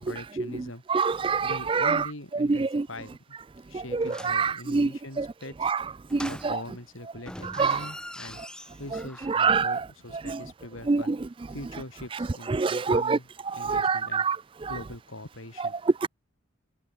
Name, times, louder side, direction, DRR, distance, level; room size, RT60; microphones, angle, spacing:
voice 1, 0.0-0.8 1.4-3.4 3.7-5.7 6.2-8.4 8.8-11.1 11.5-14.3 14.7-15.7, left 1 dB, 75° left, 6.0 m, -42 dB
voice 2, 0.9-2.1 2.4-2.9 3.7-4.9 5.2-5.3 5.6-5.8 6.1-6.6 7.4-7.8 9.3-9.8 10.2-10.4 10.9-11.2 12.5-13.2 13.5-14.4 14.6-14.8 15.6-15.7 16.0-16.1, right 4 dB, 25° right, 0.3 m, -25 dB
sound 1, 4.0-4.5 6.1-6.9 7.2-9.5 9.7-9.8, left 1 dB, 5° left, 6.6 m, -42 dB
head